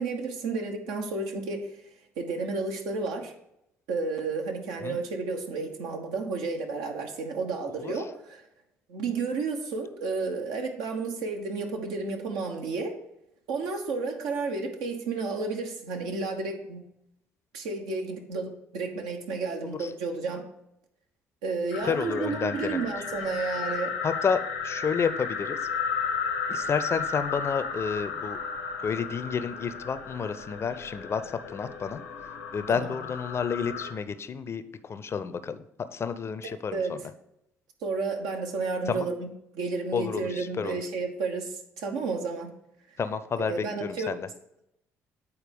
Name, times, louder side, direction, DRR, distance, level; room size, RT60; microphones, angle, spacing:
voice 1, 0.0-1.7 2.2-3.3 3.9-8.4 8.9-13.0 13.5-16.8 17.5-20.4 21.4-23.9 32.7-32.9 36.7-37.0 37.8-39.3 39.5-42.5 43.4-44.1, right 4 dB, 70° right, 3 dB, 1.2 m, -31 dB
sound 1, 21.7-33.9, left 5 dB, 80° left, 0.9 m, -34 dB
voice 2, 21.8-22.9 24.0-25.6 26.5-28.4 28.8-32.0 32.5-35.6 35.9-37.0 38.9-39.1 39.9-40.8 43.0-44.3, left 6 dB, 40° left, 12 dB, 0.6 m, -30 dB
8.5 x 4.4 x 5.3 m, 0.81 s
hypercardioid pair, 50°, 7 cm